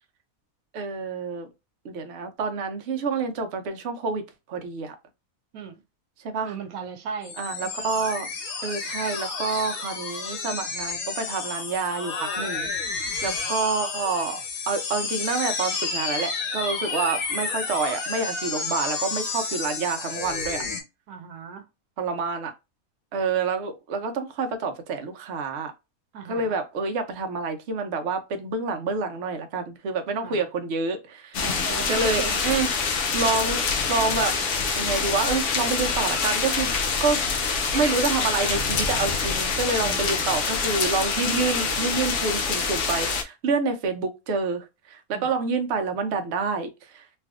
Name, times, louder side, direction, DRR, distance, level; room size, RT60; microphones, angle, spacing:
voice 1, 0.7-1.5 1.8-4.2 4.5-5.0 6.2-6.5 7.4-8.3 8.6-14.4 14.7-20.6 22.0-22.5 23.1-25.7 26.3-31.4 31.9-32.7 33.1-33.6 33.9-34.4 34.8-36.7 37.0-37.2 37.7-47.0, right 4 dB, 60° right, 0.8 m, -28 dB
voice 2, 6.4-7.4 7.9-8.0 13.2-13.4 21.1-21.6 26.1-26.6 30.2-30.5 31.4-32.4 39.8-40.3 45.1-45.3, right 6 dB, 90° right, 1.1 m, -37 dB
sound 1, 7.2-20.8, left 4 dB, 85° left, 1.2 m, -31 dB
sound 2, 31.3-43.2, left 5 dB, 65° left, 0.9 m, -26 dB
3.2 x 2.6 x 2.4 m
omnidirectional pair, 1.5 m